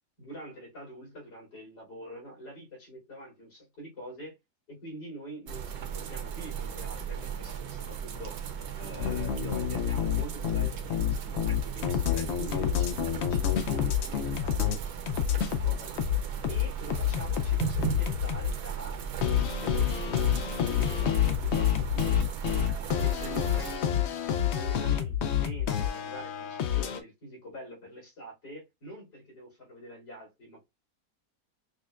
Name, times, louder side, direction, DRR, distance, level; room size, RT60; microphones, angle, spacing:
voice 1, 0.2-4.4 4.7-15.9 16.5-19.0 19.6-24.1 24.4-30.7, right 1 dB, 75° left, 3.4 m, -45 dB
sound 1, 5.5-23.8, right 7 dB, 75° right, 1.2 m, -37 dB
sound 2, 9.0-14.8 15.1-18.5 19.2-27.0, left 10 dB, 90° left, 0.5 m, -28 dB
6.3 x 2.2 x 2.4 m
omnidirectional pair, 1.8 m